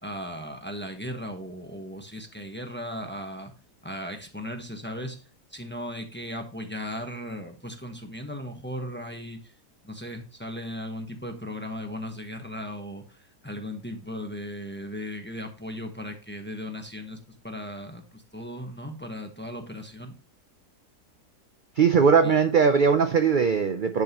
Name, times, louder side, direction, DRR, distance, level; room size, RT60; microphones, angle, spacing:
voice 1, 0.0-3.5 3.8-5.2 5.5-9.5 9.8-17.2 17.4-20.1 22.2-22.3, equal, 10° left, 4 dB, 1.0 m, -37 dB
voice 2, 21.8-24.0, right 6 dB, 55° right, 8 dB, 0.5 m, -20 dB
10.5 x 5.9 x 3.0 m, 0.35 s
omnidirectional pair, 1.7 m